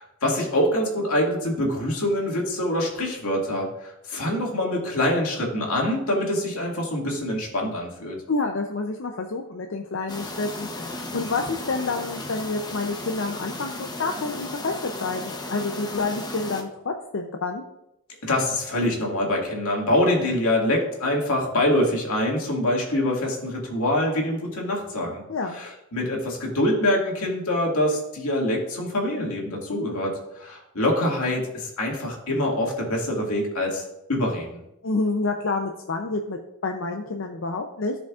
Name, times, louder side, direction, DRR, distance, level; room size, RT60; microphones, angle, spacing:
voice 1, 0.0-8.2 18.2-25.2 25.6-30.1 30.4-33.8 34.1-34.6, left 1 dB, 85° left, -1 dB, 2.1 m, -25 dB
voice 2, 8.3-17.6 25.3-25.6 29.7-30.0 34.8-37.9, left 3 dB, 60° left, 3 dB, 0.6 m, -28 dB
sound 1, 10.1-16.6, left 2 dB, 20° left, 0.8 m, -35 dB
15.0 x 5.0 x 2.4 m, 0.88 s
head